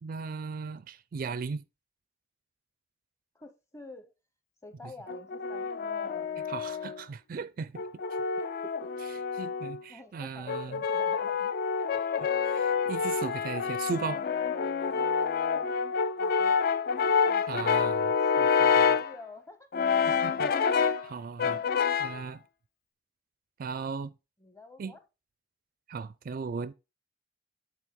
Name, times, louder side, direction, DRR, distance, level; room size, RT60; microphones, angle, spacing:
voice 1, 0.0-1.6 4.8-4.9 6.5-7.8 9.0-10.8 12.5-14.2 17.5-18.0 18.4-18.9 20.0-21.6 22.0-22.4 23.6-24.1 24.8-25.0 25.9-26.7, right 5 dB, 50° right, 0.4 m, -37 dB
voice 2, 3.3-4.1 4.6-6.4 9.9-11.8 16.2-16.6 17.3-17.9 18.3-19.7 24.4-25.0, left 3 dB, 15° left, 0.9 m, -48 dB
Brass instrument, 5.1-7.0 7.8-9.8 10.5-19.1 19.7-21.1 21.4-22.2, left 6 dB, 55° left, 0.4 m, -28 dB
9.0 x 3.5 x 3.7 m
head